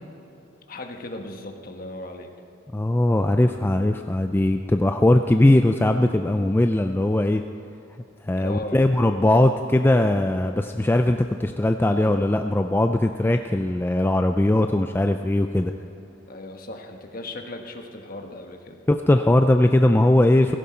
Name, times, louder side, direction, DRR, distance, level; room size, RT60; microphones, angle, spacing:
voice 1, 0.7-2.3 8.4-8.8 16.3-18.8, left 2 dB, 45° left, 4 dB, 1.3 m, -37 dB
voice 2, 2.7-7.4 8.2-15.7 18.9-20.5, left 1 dB, 10° left, 6 dB, 0.3 m, -20 dB
16.5 x 15.0 x 4.4 m, 2.8 s
head